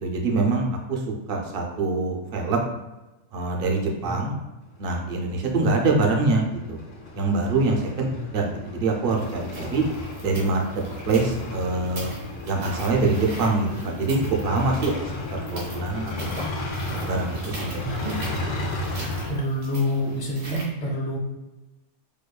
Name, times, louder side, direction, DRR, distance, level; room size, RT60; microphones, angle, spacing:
voice 1, 0.0-2.6 3.3-4.3 4.8-6.8 7.1-8.1 8.3-9.8 10.2-10.6 11.1-12.1 12.5-14.2 14.4-15.0 15.3-16.4 17.1-18.1, right 3 dB, 60° right, 1 dB, 0.5 m, -24 dB
voice 2, 4.0-4.3 8.1-8.2 17.8-18.2 19.3-21.2, equal, 35° left, -4 dB, 0.8 m, -27 dB
sound 1, 4.8-19.3, left 1 dB, 90° left, 1.3 m, -34 dB
sound 2, 9.1-20.6, right 2 dB, 85° right, 1.7 m, -40 dB
5.1 x 2.3 x 2.3 m, 1.0 s
omnidirectional pair, 1.6 m